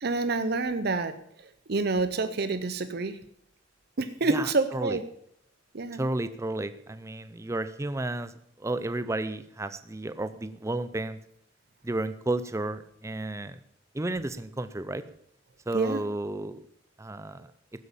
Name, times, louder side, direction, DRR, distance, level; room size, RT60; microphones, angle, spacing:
voice 1, 0.0-1.2 1.7-3.2 4.0-5.0 5.7-6.0 15.7-16.0, right 3 dB, 55° right, 11 dB, 0.7 m, -28 dB
voice 2, 4.2-5.0 5.9-11.2 11.8-13.6 13.9-15.0 15.7-16.7 17.0-17.5, right 2 dB, 15° right, 11 dB, 0.5 m, -32 dB
15.5 x 8.2 x 7.2 m, 0.70 s
head